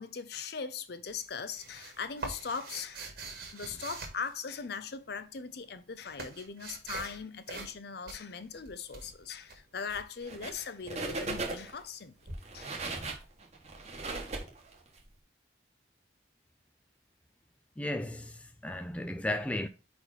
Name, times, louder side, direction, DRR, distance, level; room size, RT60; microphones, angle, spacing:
voice 1, 0.0-3.0 3.5-12.1 12.5-12.7, left 5 dB, 55° left, 0.6 m, -40 dB
sound 1, 1.1-4.9 5.6-7.2 7.5-7.8 8.1-10.0 12.3-12.4, right 3 dB, 55° right, 1.5 m, -44 dB
sound 2, 10.2-10.6 10.9-11.8 12.3-15.0, right 3 dB, 35° right, 1.1 m, -37 dB
voice 2, 17.8-19.7, left 1 dB, 5° left, 0.3 m, -34 dB
4.9 x 4.2 x 4.8 m
head